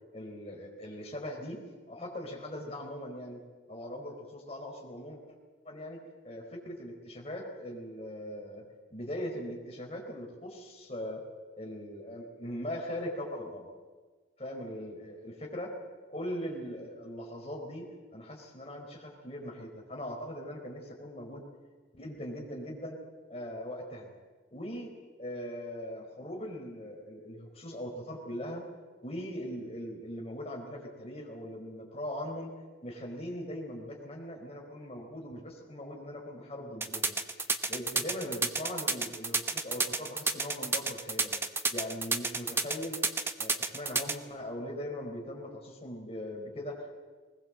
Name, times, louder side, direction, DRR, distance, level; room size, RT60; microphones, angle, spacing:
voice 1, 0.1-3.4 3.7-5.2 5.6-6.0 6.2-8.6 8.9-11.2 11.6-13.7 14.4-15.7 16.1-21.4 21.9-23.0 23.3-24.1 24.5-24.9 25.2-28.6 29.0-32.5 32.8-37.1 37.5-41.4 41.7-43.0 43.4-47.0, equal, 35° left, 0 dB, 4.4 m, -40 dB
sound 1, 36.8-44.1, right 3 dB, 15° right, 0.8 m, -30 dB
20.5 x 20.0 x 7.6 m, 1.4 s
head